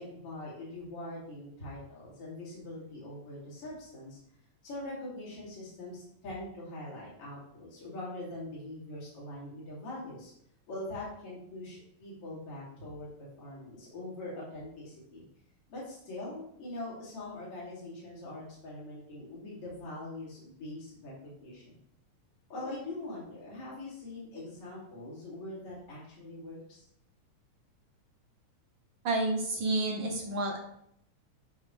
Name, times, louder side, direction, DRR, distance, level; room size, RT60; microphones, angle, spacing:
voice 1, 0.0-4.2 4.6-10.3 10.7-15.3 15.7-21.7 22.5-26.9, left 1 dB, 50° left, -7 dB, 3.7 m, -43 dB
voice 2, 29.0-30.6, right 2 dB, 80° right, 0 dB, 1.0 m, -30 dB
12.0 x 4.2 x 3.3 m, 0.73 s
omnidirectional pair, 3.5 m